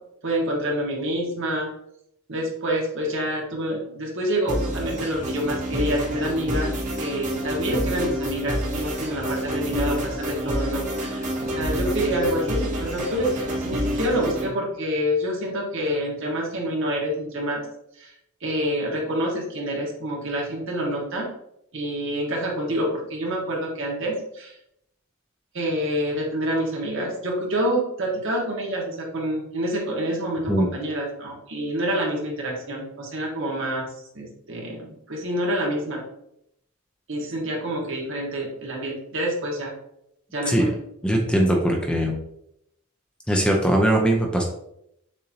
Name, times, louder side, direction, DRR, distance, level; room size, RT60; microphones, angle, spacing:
voice 1, 0.2-1.7 2.3-17.6 18.0-18.1 18.4-21.2 21.7-24.5 25.5-33.9 34.1-36.0 37.1-39.7 40.3-40.7, equal, 60° right, -2 dB, 1.3 m, -27 dB
sound 1, 4.5-14.5, equal, 35° right, 1.0 m, -28 dB
voice 2, 41.0-42.2 43.3-44.4, right 1 dB, 5° left, 0 dB, 0.5 m, -20 dB
6.7 x 2.7 x 2.8 m, 0.77 s
head